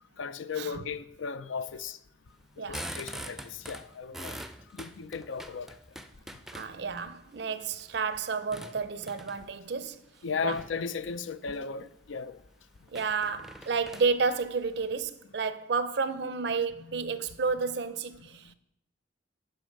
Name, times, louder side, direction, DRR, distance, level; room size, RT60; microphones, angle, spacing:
voice 1, 0.2-2.0 2.6-4.4 4.7-5.7 10.2-12.4 16.8-17.2, left 5 dB, 85° left, 0.5 m, -36 dB
sound 1, 2.4-7.0 7.5-9.6 10.4-10.8 11.3-11.6 12.0-12.1 12.4-12.5 12.9-14.9, right 1 dB, ahead, 0.4 m, -43 dB
voice 2, 6.5-10.0 10.4-10.5 12.9-18.5, right 5 dB, 60° right, 0.5 m, -31 dB
9.3 x 5.5 x 5.3 m
head